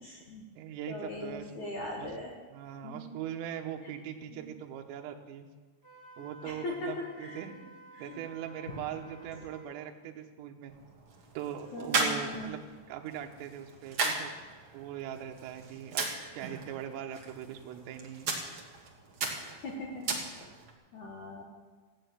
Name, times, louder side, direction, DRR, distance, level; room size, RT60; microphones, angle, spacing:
voice 1, 0.0-0.4 0.9-2.3 2.8-3.0 4.3-4.5 6.4-6.9 7.2-7.4 8.0-8.2 8.7-8.8 11.7-12.5 19.6-19.9 20.9-21.4, left 2 dB, 75° left, -1 dB, 1.7 m, -40 dB
voice 2, 0.6-1.7 2.0-2.1 2.5-5.5 6.2-7.5 8.0-10.7 11.4-12.6 12.9-14.3 14.7-16.1 16.3-18.4, right 10 dB, 80° right, 4 dB, 3.6 m, -41 dB
Wind instrument woodwind instrument, 5.8-9.7, right 2 dB, 10° right, 1.1 m, -53 dB
sound 1, 10.7-20.7, right 3 dB, 60° right, 1.4 m, -37 dB
15.0 x 8.8 x 9.2 m, 1.4 s
omnidirectional pair, 6.0 m